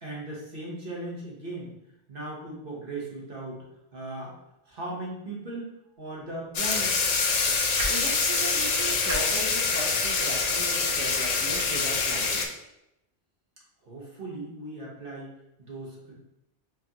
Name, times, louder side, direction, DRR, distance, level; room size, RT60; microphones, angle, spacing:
voice 1, 0.0-1.7 2.1-3.7 3.9-4.3 4.7-5.7 6.0-6.9 13.8-15.3 15.6-16.1, right 2 dB, 55° right, -3 dB, 1.2 m, -37 dB
sound 1, 6.0-12.2, right 2 dB, 70° right, 1.0 m, -43 dB
sound 2, 6.5-12.5, left 4 dB, 55° left, 0.4 m, -25 dB
voice 2, 7.9-12.5, right 2 dB, 20° right, -4 dB, 0.6 m, -37 dB
4.5 x 2.6 x 2.9 m, 0.85 s
omnidirectional pair, 1.1 m